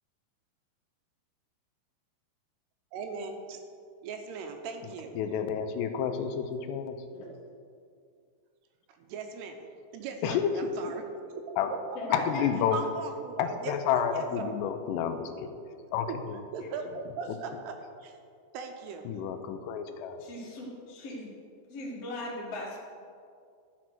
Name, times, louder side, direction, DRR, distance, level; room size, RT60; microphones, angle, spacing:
voice 1, 2.9-3.6 4.0-5.2 9.0-9.6 9.9-11.0 11.3-11.6 11.9-12.0 12.7-14.5 16.1-16.2 16.5-17.7 18.0-18.2 18.5-19.2, right 5 dB, 80° right, 5 dB, 2.8 m, -39 dB
voice 2, 4.8-7.0 10.2-10.7 11.6-11.7 12.1-12.8 13.4-15.5 15.9-16.4 17.3-17.4 19.0-20.2, left 8 dB, 80° left, 8 dB, 2.7 m, -30 dB
voice 3, 11.9-12.4 16.6-16.7 20.2-21.3 21.7-22.8, left 2 dB, 45° left, -5 dB, 2.4 m, -38 dB
12.5 x 6.1 x 6.0 m, 2.3 s
omnidirectional pair, 5.0 m